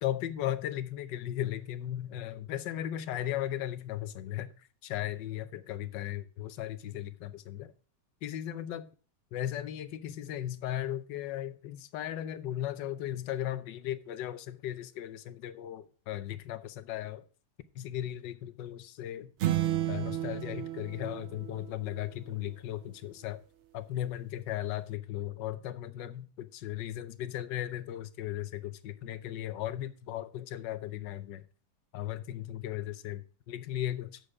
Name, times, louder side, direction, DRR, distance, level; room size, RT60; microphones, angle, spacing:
voice 1, 0.0-7.7 8.2-8.9 9.3-17.2 17.7-19.3 19.9-23.4 23.7-31.4 31.9-34.2, left 12 dB, 80° left, 1.4 m, -36 dB
sound 1, 19.4-22.1, right 13 dB, 85° right, 0.6 m, -32 dB
7.7 x 6.6 x 4.8 m
omnidirectional pair, 1.9 m